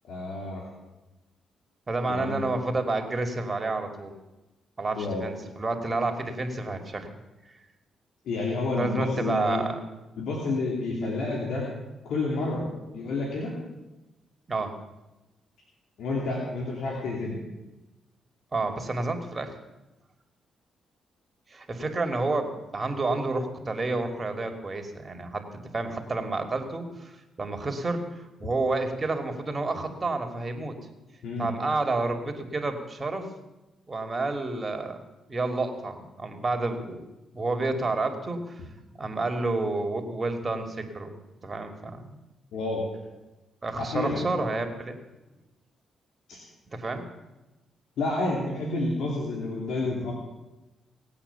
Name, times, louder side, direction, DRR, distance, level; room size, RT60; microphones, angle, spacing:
voice 1, 0.1-0.6 2.1-2.5 4.9-5.3 8.2-9.6 10.2-11.7 12.0-12.6 12.9-13.5 16.0-17.4 31.2-31.5 42.5-42.8 43.8-44.2 46.3-46.4 48.0-50.1, left 2 dB, 75° left, -2 dB, 3.0 m, -29 dB
voice 2, 1.9-4.1 4.8-7.1 8.8-9.8 14.5-14.7 18.5-19.6 21.5-25.4 25.7-30.7 31.4-33.3 33.9-35.0 35.3-37.0 37.3-38.6 39.0-41.2 41.4-42.2 43.6-45.0 46.7-47.0, right 3 dB, 30° right, 5 dB, 2.6 m, -30 dB
18.5 x 8.7 x 7.0 m, 1.0 s
supercardioid pair, 65°, 0 cm